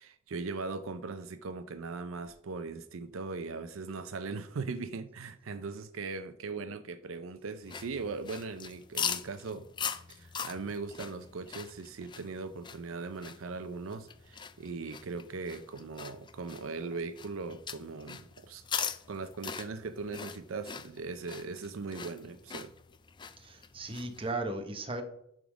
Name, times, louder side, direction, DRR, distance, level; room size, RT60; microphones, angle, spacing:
voice 1, 0.0-9.7 10.1-18.6 19.1-22.7, right 4 dB, 75° right, 10 dB, 0.5 m, -39 dB
sound 1, 7.6-24.3, left 7 dB, 25° left, 0.4 m, -42 dB
voice 2, 23.4-25.0, right 2 dB, 25° right, 6 dB, 1.0 m, -36 dB
10.5 x 3.7 x 6.1 m, 0.74 s
head